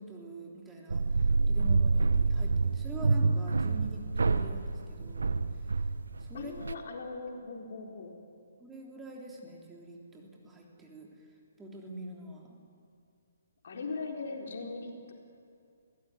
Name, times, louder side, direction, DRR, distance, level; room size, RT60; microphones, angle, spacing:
voice 1, 0.0-5.4 6.2-6.5 8.6-11.3 11.6-12.6, right 1 dB, 10° right, -1 dB, 3.2 m, -45 dB
sound 1, 0.9-6.7, right 4 dB, 75° right, 1.1 m, -27 dB
voice 2, 6.3-8.2 13.6-15.1, left 3 dB, 60° left, 1 dB, 4.0 m, -39 dB
23.0 x 17.5 x 9.7 m, 2.4 s
figure-of-eight pair, 140°, 0 cm